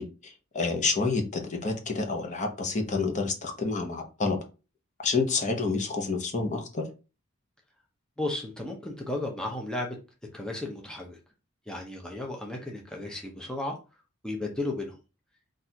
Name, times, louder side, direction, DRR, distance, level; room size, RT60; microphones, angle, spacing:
voice 1, 0.0-4.4 5.0-6.8, left 4 dB, 35° left, 4 dB, 0.9 m, -29 dB
voice 2, 8.2-10.0 10.3-11.2 11.7-13.7 14.2-14.9, left 2 dB, 5° left, 0 dB, 0.7 m, -34 dB
4.2 x 2.6 x 4.5 m, 0.31 s
head